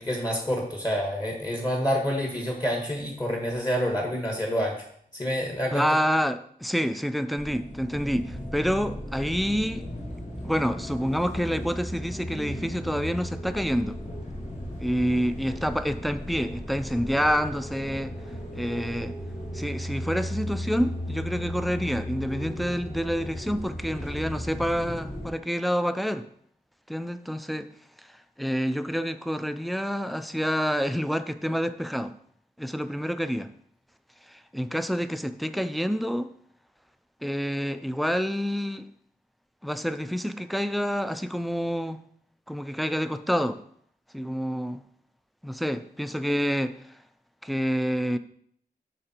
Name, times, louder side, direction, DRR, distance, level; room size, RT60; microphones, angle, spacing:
voice 1, 0.0-4.8 5.1-5.8, equal, 25° left, 0 dB, 1.6 m, -28 dB
voice 2, 5.7-9.8 10.4-14.0 14.8-18.1 18.5-19.2 19.5-26.3 26.9-27.7 28.0-28.1 28.4-32.1 32.6-33.5 34.3-36.3 37.2-38.9 39.6-42.0 42.5-43.6 44.1-44.8 45.4-46.8 47.4-48.2, equal, ahead, 10 dB, 0.5 m, -28 dB
sound 1, 7.4-25.3, equal, 45° left, 2.1 m, -36 dB
11.5 x 3.9 x 4.4 m, 0.64 s
wide cardioid pair, 95°, 16 cm